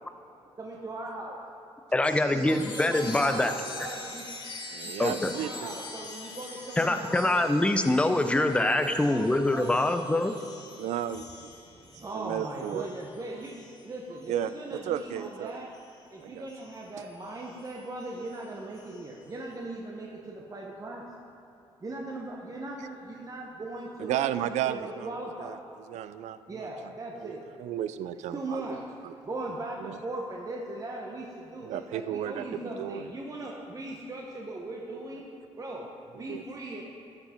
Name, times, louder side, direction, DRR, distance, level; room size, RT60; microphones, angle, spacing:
voice 1, 0.6-1.4 2.3-4.2 4.8-7.4 8.1-9.9 12.0-15.7 16.1-21.1 21.8-24.1 24.6-25.6 26.5-27.4 28.3-28.8 29.3-35.3 35.6-36.8, right 2 dB, 30° right, -1 dB, 1.0 m, -39 dB
voice 2, 1.9-3.5 5.0-5.3 6.8-10.3, left 2 dB, 10° left, 8 dB, 0.5 m, -24 dB
Chime, 2.0-16.0 16.5-19.3, left 3 dB, 45° left, 1.8 m, -45 dB
voice 3, 4.7-6.3 10.8-11.5 11.9-12.9 14.1-15.6 16.2-16.5 22.8-22.9 24.0-29.1 29.5-30.0 31.6-33.1 35.1-35.2 36.1-36.4, right 10 dB, 85° right, 13 dB, 0.4 m, -35 dB
12.5 x 5.9 x 4.4 m, 2.8 s
cardioid pair, 80°, 12 cm